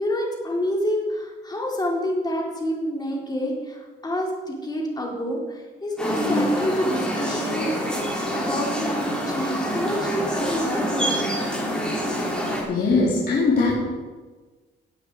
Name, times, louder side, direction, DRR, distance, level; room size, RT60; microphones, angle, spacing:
voice 1, 0.0-11.4, equal, 20° left, -2 dB, 4.1 m, -28 dB
sound 1, 6.0-12.6, equal, 5° left, 4.7 m, -26 dB
voice 2, 12.7-13.7, left 3 dB, 50° left, -7 dB, 3.9 m, -20 dB
17.5 x 8.4 x 4.9 m, 1.3 s
cardioid pair, 90°, 20 cm